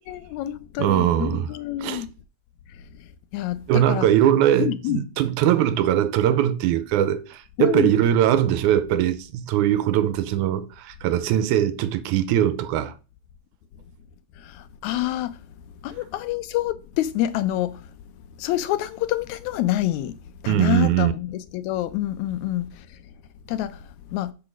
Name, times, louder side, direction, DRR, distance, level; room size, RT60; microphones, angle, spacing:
voice 1, 0.0-2.1 2.7-2.8 3.3-4.1 4.6-5.0 7.6-7.9 14.4-15.4 15.8-17.9 18.4-20.2 20.4-23.0 23.5-24.3, left 13 dB, 80° left, 1.8 m, -27 dB
voice 2, 0.8-1.5 1.8-2.0 3.7-12.9 20.5-21.1, right 11 dB, 85° right, 2.1 m, -21 dB
7.7 x 3.9 x 6.1 m
omnidirectional pair, 3.5 m